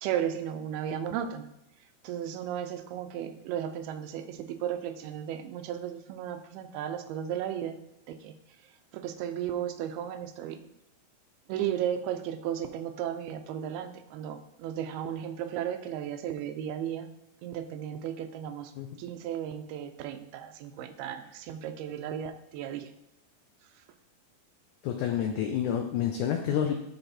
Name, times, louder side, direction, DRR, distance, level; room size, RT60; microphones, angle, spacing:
voice 1, 0.0-1.5 2.0-7.8 8.1-8.3 8.9-10.6 11.5-17.1 17.4-18.7 19.0-22.9, right 10 dB, 90° right, 8 dB, 2.6 m, -35 dB
voice 2, 24.8-26.7, left 9 dB, 85° left, 5 dB, 1.7 m, -28 dB
12.5 x 4.1 x 4.3 m, 0.86 s
omnidirectional pair, 4.4 m